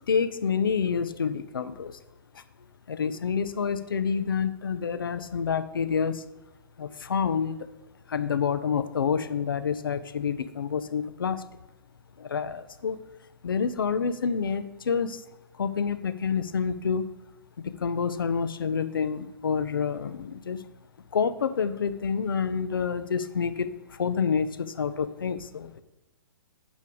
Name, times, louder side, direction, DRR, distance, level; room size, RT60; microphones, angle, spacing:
voice 1, 0.1-2.0 2.3-2.4 2.9-6.2 6.8-7.6 8.1-11.4 12.2-13.0 13.4-15.2 15.6-17.1 17.6-20.6 21.1-25.8, left 6 dB, 70° left, 13 dB, 0.5 m, -28 dB
6.9 x 5.2 x 5.1 m, 1.0 s
figure-of-eight pair, 120°, 12 cm